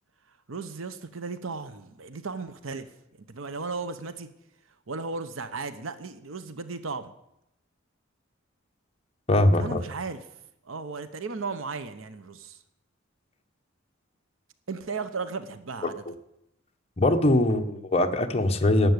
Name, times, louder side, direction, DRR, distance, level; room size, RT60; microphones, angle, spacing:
voice 1, 0.5-2.9 3.1-4.3 4.9-7.1 9.6-10.2 10.6-12.6 14.7-16.0, right 4 dB, 85° right, 11 dB, 0.9 m, -35 dB
voice 2, 9.3-9.8 15.8-15.9 17.0-18.9, left 1 dB, 30° left, 5 dB, 1.2 m, -22 dB
11.5 x 7.7 x 9.6 m, 0.82 s
head